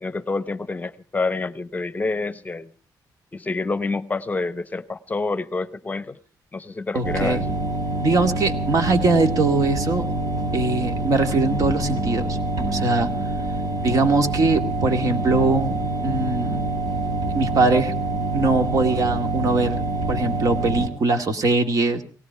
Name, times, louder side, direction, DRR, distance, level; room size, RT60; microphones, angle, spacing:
voice 1, 0.0-2.7 3.3-6.2 6.5-7.6, left 3 dB, 20° left, 15 dB, 0.9 m, -28 dB
voice 2, 6.9-7.4 8.0-10.0 10.5-12.4 12.7-13.1 13.8-16.6 17.3-17.9 18.3-22.0, right 3 dB, 50° right, 6 dB, 2.1 m, -21 dB
sound 1, 7.0-20.9, right 2 dB, 70° right, 6.2 m, -26 dB
18.5 x 17.0 x 4.6 m, 0.39 s
cardioid pair, 125°, 7 cm